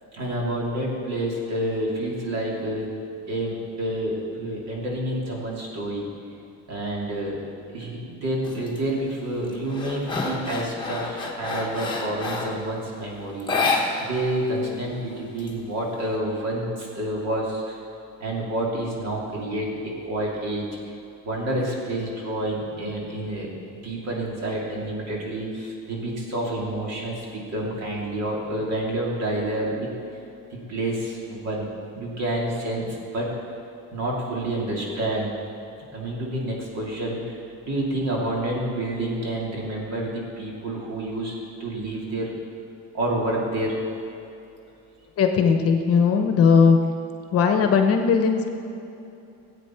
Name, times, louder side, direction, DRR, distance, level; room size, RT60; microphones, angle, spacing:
voice 1, 0.1-2.9 3.3-6.1 6.7-7.4 7.7-17.8 18.2-20.6 21.2-29.9 30.5-31.7 31.9-32.9 33.1-33.3 33.9-35.3 35.9-37.4 37.6-41.3 41.6-42.3 42.9-43.8, right 1 dB, 50° right, -3 dB, 2.7 m, -28 dB
sound 1, 8.4-8.8 9.2-12.6 13.4-14.4 14.6-14.7 15.1-16.0, left 3 dB, 15° left, 1.2 m, -28 dB
voice 2, 45.2-46.8 47.3-48.5, left 6 dB, 45° left, 6 dB, 1.0 m, -18 dB
16.5 x 8.5 x 4.5 m, 2.8 s
cardioid pair, 175°, 33 cm